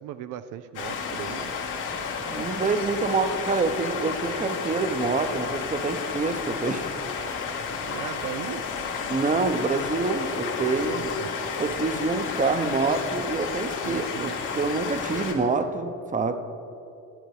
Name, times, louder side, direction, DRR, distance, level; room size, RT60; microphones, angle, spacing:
voice 1, 0.0-1.5 7.8-8.6 10.8-11.3 13.8-14.4, right 11 dB, 90° right, 11 dB, 0.5 m, -37 dB
sound 1, 0.7-15.3, left 5 dB, 85° left, 2.1 m, -32 dB
voice 2, 2.3-6.9 9.1-11.1 11.6-14.3 14.5-16.3, right 4 dB, 25° right, 8 dB, 0.8 m, -26 dB
12.5 x 9.0 x 4.8 m, 2.7 s
cardioid pair, 90°, 30 cm